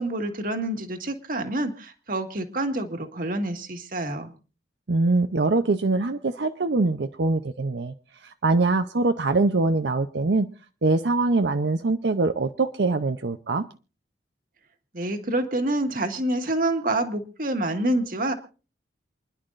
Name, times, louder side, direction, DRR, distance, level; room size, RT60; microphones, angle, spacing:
voice 1, 0.0-4.3 14.9-18.3, right 1 dB, 50° right, 6 dB, 1.8 m, -27 dB
voice 2, 4.9-7.9 8.2-10.5 10.8-13.7, right 3 dB, 80° right, 8 dB, 0.7 m, -23 dB
28.0 x 11.0 x 2.6 m, 0.34 s
head